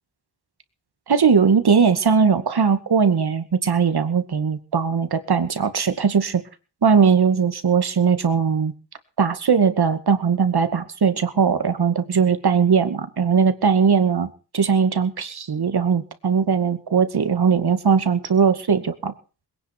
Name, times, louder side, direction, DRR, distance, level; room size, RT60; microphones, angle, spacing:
voice 1, 1.1-6.4 6.8-8.7 9.2-19.1, right 6 dB, 60° right, 10 dB, 2.2 m, -19 dB
21.5 x 10.0 x 6.0 m, 0.37 s
wide cardioid pair, 100°, 42 cm